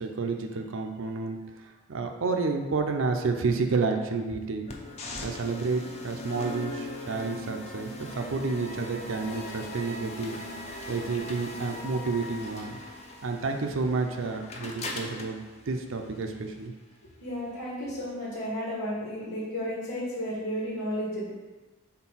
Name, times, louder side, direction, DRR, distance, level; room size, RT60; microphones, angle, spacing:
voice 1, 0.0-4.7 5.2-10.4 10.9-12.8 13.2-16.7, right 4 dB, 60° right, 4 dB, 0.5 m, -30 dB
sound 1, 4.7-16.7, left 1 dB, 30° left, 0.6 m, -40 dB
voice 2, 17.2-21.3, equal, 85° left, -6 dB, 1.6 m, -33 dB
4.4 x 3.8 x 5.6 m, 1.3 s
head